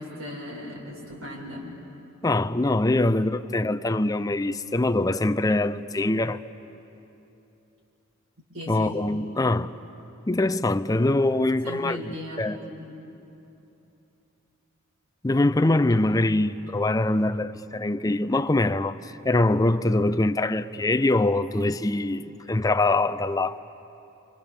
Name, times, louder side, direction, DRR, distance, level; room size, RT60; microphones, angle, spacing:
voice 1, 0.0-1.6 8.5-9.0 11.6-13.0, left 1 dB, 80° right, 6.0 m, -37 dB
voice 2, 2.2-6.4 8.7-9.7 10.3-12.6 15.2-23.6, left 2 dB, 15° left, 0.5 m, -23 dB
28.5 x 26.5 x 7.1 m
head